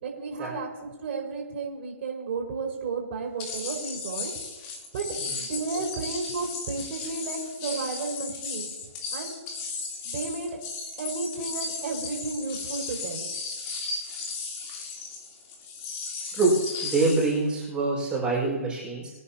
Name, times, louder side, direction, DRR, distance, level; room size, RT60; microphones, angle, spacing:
voice 1, 0.0-4.3 4.9-8.7 9.1-9.3 10.0-10.6 11.0-13.3, right 4 dB, 45° right, -1 dB, 4.7 m, -33 dB
sound 1, 3.4-17.4, left 4 dB, 30° left, 3.4 m, -35 dB
voice 2, 16.8-19.1, right 3 dB, 10° right, -6 dB, 5.4 m, -25 dB
25.5 x 9.9 x 2.9 m, 1.2 s
hypercardioid pair, 140°, 8 cm